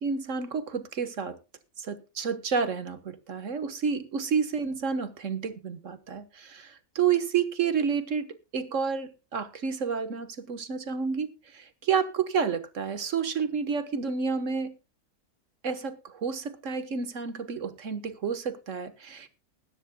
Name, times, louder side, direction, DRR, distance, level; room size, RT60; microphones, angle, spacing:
voice 1, 0.0-1.4 1.8-14.7 15.6-19.3, right 6 dB, 55° right, 12 dB, 1.6 m, -30 dB
20.5 x 9.9 x 2.2 m, 0.30 s
omnidirectional pair, 1.6 m